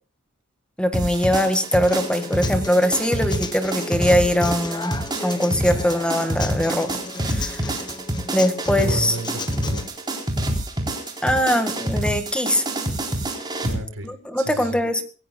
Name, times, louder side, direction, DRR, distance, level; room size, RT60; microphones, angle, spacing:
voice 1, 0.8-4.9 5.2-6.9 7.2-7.8 8.3-9.1 11.2-12.6 14.0-15.0, equal, 5° left, 6 dB, 1.7 m, -21 dB
sound 1, 0.9-13.7, right 1 dB, 20° right, 4.0 m, -27 dB
Human voice / Acoustic guitar, 1.9-9.9, left 3 dB, 20° left, 1.2 m, -35 dB
voice 2, 8.8-9.9 13.6-14.8, right 1 dB, 90° right, 7 dB, 3.9 m, -31 dB
25.0 x 17.0 x 2.3 m, 0.37 s
head